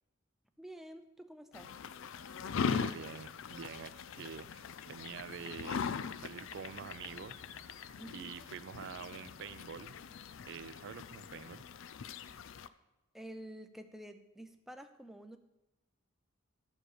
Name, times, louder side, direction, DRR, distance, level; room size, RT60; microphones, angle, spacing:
voice 1, 0.6-1.7 8.0-8.3 13.1-15.4, right 1 dB, ahead, 7 dB, 0.5 m, -49 dB
sound 1, 1.5-12.7, left 6 dB, 60° left, 0.4 m, -41 dB
voice 2, 2.5-5.8 6.2-7.4 7.7-10.0 10.5-11.6, right 7 dB, 55° right, 14 dB, 0.4 m, -47 dB
12.5 x 5.1 x 6.6 m, 0.98 s
head